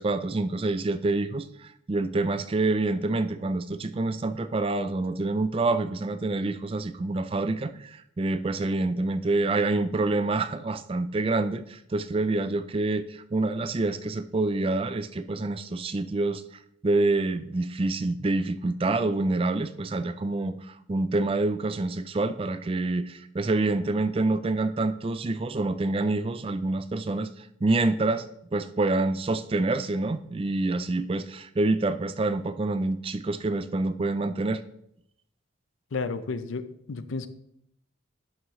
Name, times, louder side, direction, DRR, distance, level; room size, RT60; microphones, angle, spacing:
voice 1, 0.0-16.4 16.8-28.3 28.5-34.6, right 2 dB, 30° right, 12 dB, 0.4 m, -27 dB
voice 2, 35.9-37.3, left 4 dB, 85° left, 12 dB, 0.6 m, -32 dB
11.0 x 6.3 x 3.1 m, 0.75 s
head